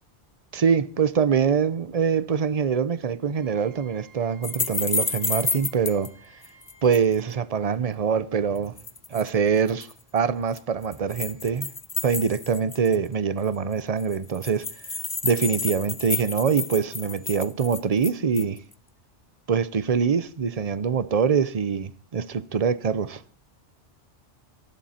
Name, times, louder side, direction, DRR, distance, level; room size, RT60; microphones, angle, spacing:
voice 1, 0.5-6.1 6.8-8.8 9.1-9.9 10.1-11.7 12.0-14.6 15.2-18.6 19.5-23.2, right 6 dB, 40° right, 0.8 m, -24 dB
Wind instrument woodwind instrument, 3.3-7.4, right 5 dB, 90° right, 7.9 m, -54 dB
sound 1, 4.4-6.1 6.4-7.1 8.6-9.3 9.7-9.9 10.6-13.1 13.4-13.5 13.7-13.8 14.0-18.6, left 3 dB, 20° left, 0.7 m, -30 dB
18.5 x 15.0 x 4.3 m
omnidirectional pair, 1.1 m